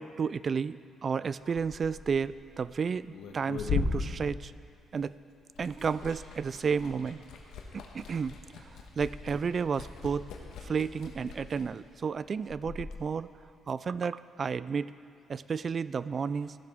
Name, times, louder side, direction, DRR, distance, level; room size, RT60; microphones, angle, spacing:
voice 1, 0.0-4.5 4.9-5.2 5.6-7.2 7.7-8.4 9.0-10.3 10.6-13.3 13.7-14.9 15.3-16.5, right 6 dB, 45° right, 17 dB, 0.3 m, -32 dB
Liquid, 1.4-5.1 5.4-13.0, left 5 dB, 85° left, 1.3 m, -39 dB
14.5 x 12.5 x 3.6 m, 2.3 s
cardioid pair, 90°, 0 cm